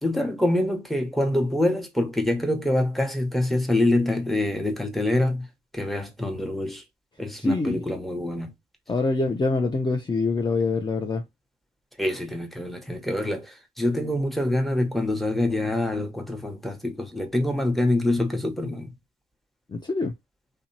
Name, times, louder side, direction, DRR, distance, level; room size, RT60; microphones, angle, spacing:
voice 1, 0.0-5.5 5.7-6.8 7.2-8.5 12.0-18.9, left 1 dB, ahead, 0.9 m, -25 dB
voice 2, 7.4-7.8 8.9-11.2 19.7-20.1, left 3 dB, 20° left, 0.5 m, -25 dB
2.6 x 2.2 x 2.7 m
supercardioid pair, 50°, 21 cm